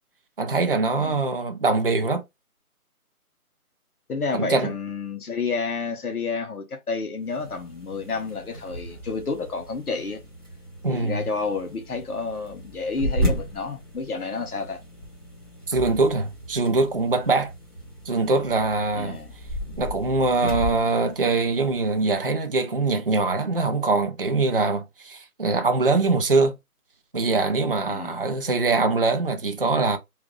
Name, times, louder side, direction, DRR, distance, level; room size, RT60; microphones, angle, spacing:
voice 1, 0.4-2.2 4.3-4.7 10.8-11.2 15.7-17.5 18.1-19.2 19.8-26.5 27.1-30.0, right 3 dB, 40° right, 0.4 m, -23 dB
voice 2, 0.9-1.2 4.1-10.2 10.9-14.8 18.9-19.3 27.9-28.2, left 4 dB, 75° left, 1.2 m, -30 dB
sound 1, 7.2-22.0, equal, 15° left, 0.8 m, -34 dB
3.6 x 2.4 x 3.2 m
figure-of-eight pair, 155°, 45 cm